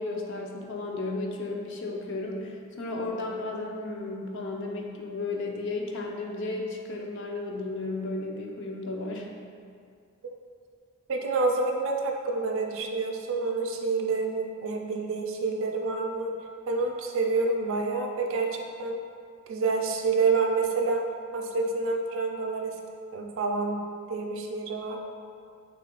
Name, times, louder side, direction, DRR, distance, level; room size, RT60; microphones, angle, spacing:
voice 1, 0.0-9.3, left 2 dB, 55° left, 1 dB, 0.4 m, -34 dB
voice 2, 11.1-16.3 16.7-19.0 19.5-21.0 21.3-22.8 23.1-23.8 24.1-25.0, right 3 dB, 60° right, 2 dB, 0.4 m, -28 dB
3.5 x 2.3 x 3.6 m, 2.3 s
head